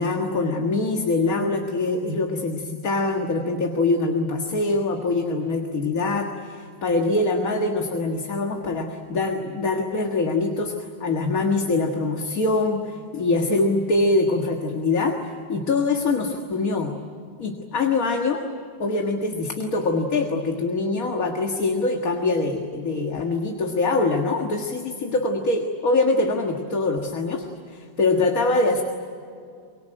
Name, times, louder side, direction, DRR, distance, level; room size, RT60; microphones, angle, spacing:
voice 1, 0.0-16.9 17.4-18.4 18.8-28.8, left 3 dB, 50° left, 3 dB, 2.1 m, -24 dB
24.5 x 23.5 x 9.0 m, 2.3 s
omnidirectional pair, 2.0 m